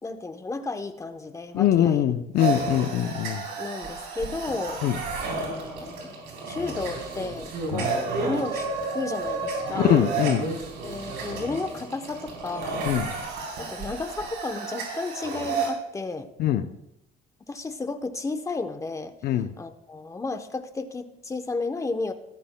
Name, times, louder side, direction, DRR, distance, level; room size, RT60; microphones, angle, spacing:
voice 1, 0.0-2.0 2.4-2.7 3.6-4.8 5.4-6.2 6.5-8.7 8.9-10.0 10.8-12.8 13.6-16.3 17.5-19.1 19.6-22.1, left 3 dB, 20° left, 8 dB, 0.9 m, -33 dB
voice 2, 1.5-3.4 4.8-5.0 7.7-7.8 9.8-10.5 12.9-13.1 16.4-16.7 19.2-19.5, left 11 dB, 65° left, 8 dB, 0.7 m, -22 dB
sound 1, 2.4-15.7, right 3 dB, 90° right, 3.9 m, -31 dB
15.0 x 13.0 x 2.3 m, 0.83 s
cardioid pair, 110°, 17 cm